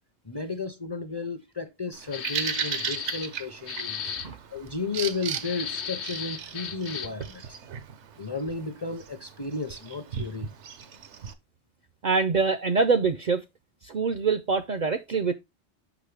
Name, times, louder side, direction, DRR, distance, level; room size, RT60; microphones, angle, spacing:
voice 1, 0.3-4.0 4.5-7.6 8.2-10.5, left 4 dB, 30° left, 0.5 m, -33 dB
Bird vocalization bird call bird song, 1.9-11.3, right 7 dB, 80° right, 1.0 m, -37 dB
sound 1, 2.1-3.3 3.7-4.3 5.4-7.2, left 7 dB, 80° left, 1.1 m, -35 dB
voice 2, 12.0-13.4 13.8-15.3, right 4 dB, 55° right, 0.5 m, -24 dB
6.1 x 5.5 x 3.2 m
omnidirectional pair, 1.1 m